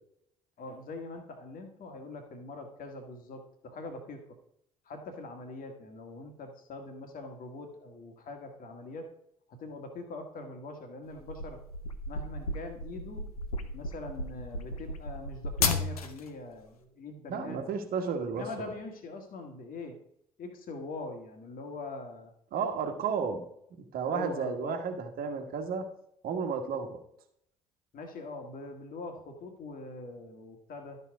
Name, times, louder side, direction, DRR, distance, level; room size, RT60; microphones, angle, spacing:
voice 1, 0.6-4.2 4.9-9.1 9.5-11.6 12.1-13.2 13.7-17.7 18.3-20.0 20.4-22.3 22.9-23.0 24.1-24.8 27.9-31.0, left 2 dB, 50° left, 5 dB, 1.8 m, -43 dB
sound 1, 11.1-16.3, left 3 dB, 85° left, 0.8 m, -34 dB
voice 2, 17.3-18.4 22.5-23.4 23.9-25.9 26.2-27.0, right 6 dB, 55° right, 5 dB, 1.4 m, -32 dB
12.5 x 5.6 x 4.8 m, 0.73 s
figure-of-eight pair, 50°, 19 cm